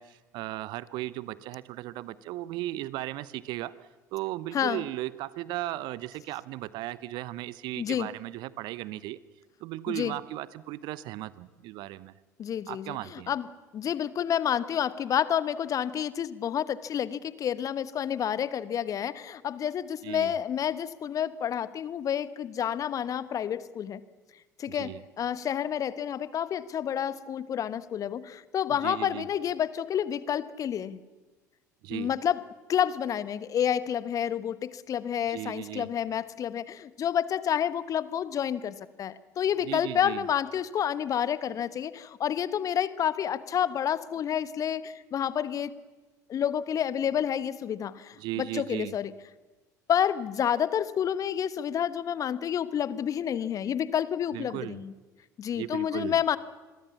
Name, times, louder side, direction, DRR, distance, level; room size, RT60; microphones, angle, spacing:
voice 1, 0.0-9.2 9.6-12.1 12.7-13.3 20.0-20.4 24.7-25.0 28.7-29.3 31.8-32.1 35.3-35.9 39.6-40.3 48.2-48.9 54.3-54.8 55.5-56.2, right 16 dB, 55° right, 19 dB, 0.9 m, -36 dB
voice 2, 7.8-8.1 9.9-10.1 12.4-13.5 13.7-24.0 24.6-31.0 31.9-32.4 32.7-45.7 46.3-49.1 49.9-54.9 55.4-56.4, left 9 dB, 40° left, 16 dB, 1.1 m, -29 dB
27.0 x 22.0 x 7.2 m, 1.2 s
figure-of-eight pair, 60°, 9 cm